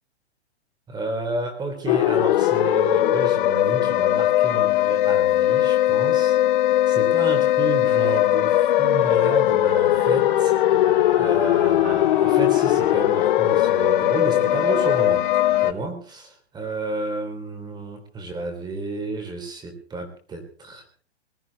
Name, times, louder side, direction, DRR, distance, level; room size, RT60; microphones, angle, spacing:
voice 1, 0.9-6.4 6.9-10.5 11.2-15.3 15.6-16.3 16.5-20.8, right 2 dB, 15° right, 5 dB, 3.7 m, -31 dB
sound 1, 1.9-15.7, left 13 dB, 50° left, 0.7 m, -19 dB
sound 2, 7.9-15.7, right 6 dB, 45° right, 5.7 m, -39 dB
21.0 x 13.5 x 4.2 m, 0.41 s
hypercardioid pair, 150°, 33 cm